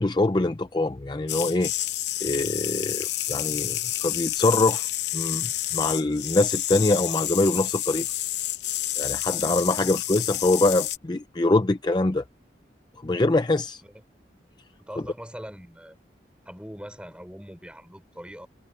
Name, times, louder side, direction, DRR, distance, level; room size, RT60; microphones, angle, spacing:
voice 1, 0.0-1.7 2.2-4.9 5.1-8.1 9.0-12.2 13.0-13.8, left 2 dB, 25° left, 0.5 m, -24 dB
sound 1, 1.3-11.0, left 13 dB, 80° left, 0.8 m, -29 dB
voice 2, 14.8-16.0 16.4-18.5, equal, 5° right, 5.9 m, -42 dB
head